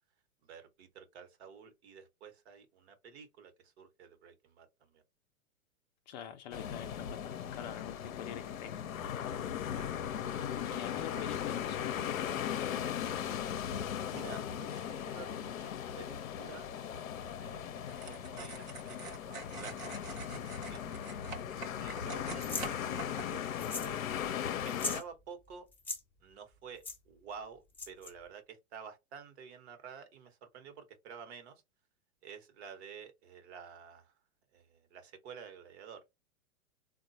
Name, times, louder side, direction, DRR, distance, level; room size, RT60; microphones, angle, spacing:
voice 1, 0.4-5.0 9.8-11.4 13.7-16.8 17.2-20.8 21.8-24.0 24.6-25.7 26.2-31.6 32.2-34.1 34.5-36.2, right 6 dB, 50° right, 1.0 m, -51 dB
voice 2, 6.1-8.8 10.6-12.7, left 10 dB, 35° left, 0.5 m, -45 dB
sound 1, 6.5-25.0, left 9 dB, 70° left, 0.6 m, -38 dB
sound 2, 17.8-23.2, right 4 dB, 20° right, 0.4 m, -46 dB
sound 3, 22.4-22.7 23.6-24.0 24.2-24.3 24.7-25.0 25.7-26.0 26.8-27.0 27.7-28.1, left 3 dB, 5° left, 0.7 m, -38 dB
3.7 x 2.2 x 2.6 m
hypercardioid pair, 110°, 42 cm